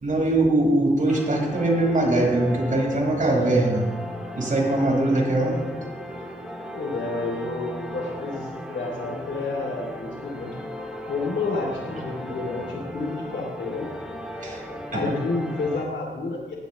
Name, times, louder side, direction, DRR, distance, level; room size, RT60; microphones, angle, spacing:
voice 1, 0.0-3.8 4.3-5.6 14.4-14.6, right 2 dB, 45° right, -1 dB, 4.8 m, -21 dB
sound 1, 1.1-15.8, equal, 5° right, 2.3 m, -36 dB
voice 2, 3.1-3.8 6.7-10.7 11.1-13.9 14.9-16.5, left 3 dB, 70° left, -1 dB, 2.7 m, -30 dB
19.5 x 17.5 x 3.1 m, 1.4 s
wide cardioid pair, 135°, 19 cm